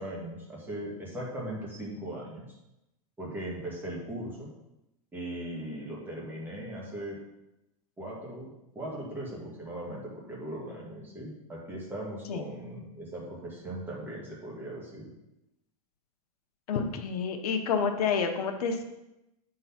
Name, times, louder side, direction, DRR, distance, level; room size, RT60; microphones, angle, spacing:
voice 1, 0.0-2.5 3.2-4.5 5.1-7.2 8.0-15.1, right 1 dB, 10° right, -4 dB, 1.7 m, -39 dB
voice 2, 16.7-18.8, left 6 dB, 90° left, 6 dB, 1.0 m, -29 dB
7.8 x 3.9 x 5.8 m, 0.90 s
supercardioid pair, 160°, 19 cm